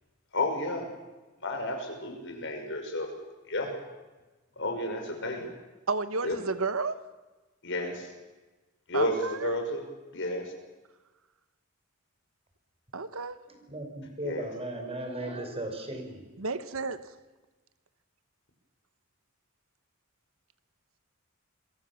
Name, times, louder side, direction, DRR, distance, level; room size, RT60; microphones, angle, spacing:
voice 1, 0.3-0.8 1.4-3.1 3.5-3.7 4.6-5.5 6.2-6.4 7.6-8.1 8.9-9.8 10.1-10.5 14.2-14.5, left 1 dB, 60° left, 4 dB, 5.9 m, -31 dB
voice 2, 5.9-7.0 8.9-9.6 12.9-13.4 16.4-17.1, right 4 dB, 70° right, 13 dB, 1.2 m, -32 dB
voice 3, 13.5-16.3, right 1 dB, 30° right, 4 dB, 5.0 m, -37 dB
28.0 x 23.0 x 7.2 m, 1.2 s
head